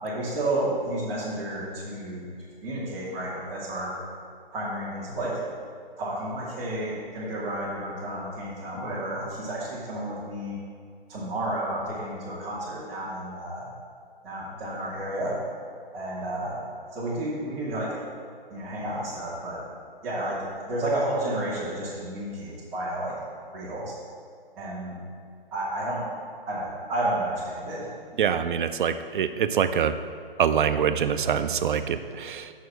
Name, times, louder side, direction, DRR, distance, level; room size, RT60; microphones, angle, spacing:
voice 1, 0.0-2.3 2.6-3.9 4.5-5.4 6.0-10.6 11.1-13.7 14.2-15.4 15.9-16.6 16.9-18.0 18.5-19.6 20.0-23.1 23.5-23.9 24.6-25.0 25.5-26.0 26.5-27.9, right 1 dB, ahead, -12 dB, 0.3 m, -31 dB
voice 2, 28.2-30.0 30.4-32.5, right 8 dB, 60° right, 11 dB, 0.5 m, -25 dB
5.7 x 4.7 x 6.1 m, 2.2 s
hypercardioid pair, 145°, 30 cm